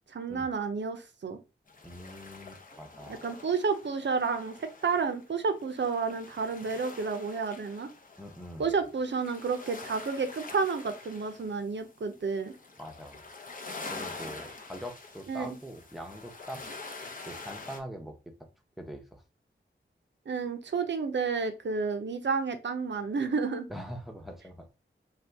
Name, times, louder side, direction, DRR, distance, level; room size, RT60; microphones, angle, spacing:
voice 1, 0.1-1.4 3.1-7.9 8.6-12.5 15.3-15.5 20.3-23.7, right 5 dB, 65° right, 7 dB, 0.6 m, -31 dB
sound 1, 1.7-17.8, left 3 dB, 40° left, 0.6 m, -46 dB
voice 2, 1.8-3.2 8.2-8.7 12.8-13.3 13.9-16.6 17.3-18.5 18.8-19.2 23.7-24.7, equal, ahead, 4 dB, 0.7 m, -43 dB
2.7 x 2.3 x 3.4 m, 0.30 s
wide cardioid pair, 55°, 21 cm